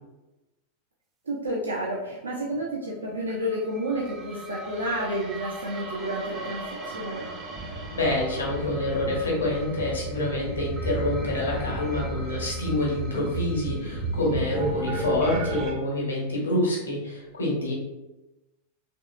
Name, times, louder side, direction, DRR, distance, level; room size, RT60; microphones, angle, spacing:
voice 1, 1.3-7.3, right 1 dB, 75° right, -4 dB, 0.5 m, -30 dB
sound 1, 3.5-15.7, right 2 dB, 25° right, 0.6 m, -34 dB
voice 2, 7.9-17.7, left 1 dB, 70° left, -3 dB, 1.1 m, -27 dB
3.5 x 3.0 x 2.4 m, 1.0 s
figure-of-eight pair, 90°, 0 cm